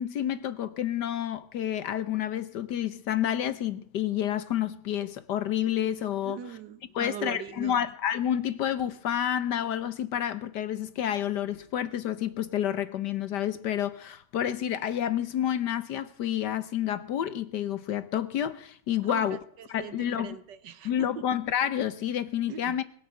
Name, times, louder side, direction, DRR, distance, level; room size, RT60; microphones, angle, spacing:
voice 1, 0.0-6.4 7.0-19.4 19.7-20.4 20.8-22.8, left 10 dB, 65° left, 1.3 m, -29 dB
voice 2, 6.2-7.8 19.0-21.2 22.5-22.8, right 8 dB, 65° right, 1.3 m, -41 dB
sound 1, 7.5-7.6 8.8-9.0 10.1-10.3 11.5-11.7, left 2 dB, 25° left, 3.0 m, -55 dB
20.5 x 8.3 x 7.5 m
omnidirectional pair, 2.2 m